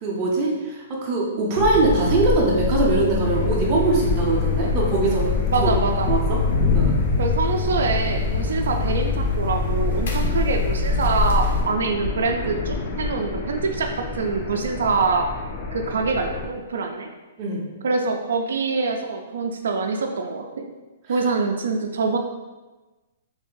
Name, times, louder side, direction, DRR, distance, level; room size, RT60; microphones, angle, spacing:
voice 1, 0.0-5.3 5.6-6.4 6.7-7.0 17.4-17.6, right 2 dB, 20° right, -4 dB, 0.6 m, -22 dB
sound 1, 1.5-11.6, left 4 dB, 60° left, 0.7 m, -24 dB
sound 2, 3.2-16.5, left 3 dB, 25° left, 0.4 m, -29 dB
voice 2, 5.5-6.1 7.2-15.3 15.7-17.1 17.8-20.6 21.1-22.2, right 4 dB, 80° right, 4 dB, 0.4 m, -25 dB
3.3 x 2.6 x 3.7 m, 1.2 s
hypercardioid pair, 170°, 0 cm